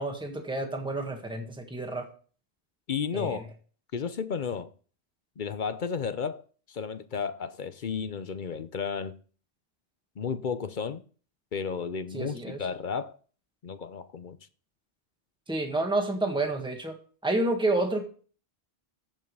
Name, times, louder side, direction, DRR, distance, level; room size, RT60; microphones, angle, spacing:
voice 1, 0.0-2.1 3.1-3.5 12.1-12.6 15.5-17.0 17.2-18.0, right 2 dB, 5° right, 1.6 m, -29 dB
voice 2, 2.9-3.4 3.9-4.7 5.4-9.2 10.2-11.0 11.5-13.2 13.6-14.4, left 6 dB, 55° left, 0.8 m, -33 dB
14.5 x 5.5 x 5.5 m
omnidirectional pair, 1.1 m